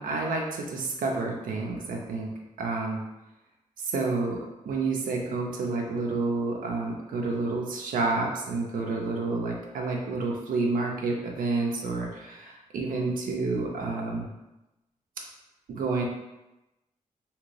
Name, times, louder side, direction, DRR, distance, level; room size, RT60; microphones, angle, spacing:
voice 1, 0.0-3.0 3.8-4.4 4.7-14.3 15.7-16.0, right 3 dB, 85° right, 0 dB, 0.5 m, -29 dB
2.9 x 2.5 x 3.2 m, 0.97 s
cardioid pair, 70°, 14 cm